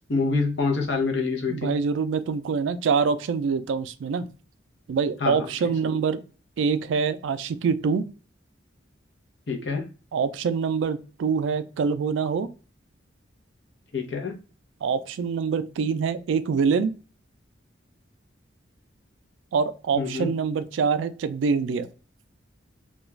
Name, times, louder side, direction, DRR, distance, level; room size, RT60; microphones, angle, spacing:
voice 1, 0.1-1.7 5.2-5.7 9.5-9.9 13.9-14.4 19.9-20.3, left 4 dB, 60° left, 2 dB, 0.7 m, -26 dB
voice 2, 1.5-4.3 4.9-6.2 6.6-8.0 10.1-12.5 14.8-16.9 19.5-21.9, right 5 dB, 75° right, 12 dB, 0.3 m, -25 dB
2.4 x 2.2 x 3.0 m, 0.36 s
head